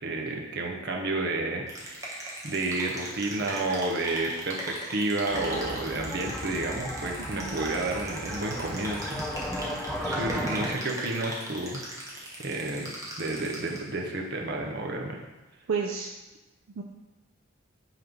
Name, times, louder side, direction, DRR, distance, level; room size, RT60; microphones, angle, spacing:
voice 1, 0.0-2.0 2.4-9.3 10.0-11.8 12.4-12.9 13.2-15.2, right 2 dB, 50° right, 1 dB, 0.8 m, -31 dB
sound 1, 1.7-14.0, right 1 dB, 15° right, 1.0 m, -39 dB
sound 2, 5.3-10.7, equal, ahead, 0.5 m, -35 dB
voice 2, 7.2-7.6 10.2-10.9 12.3-12.5 15.7-16.1 16.8-16.9, right 5 dB, 70° right, 1 dB, 0.4 m, -34 dB
5.8 x 3.2 x 5.1 m, 1.1 s
head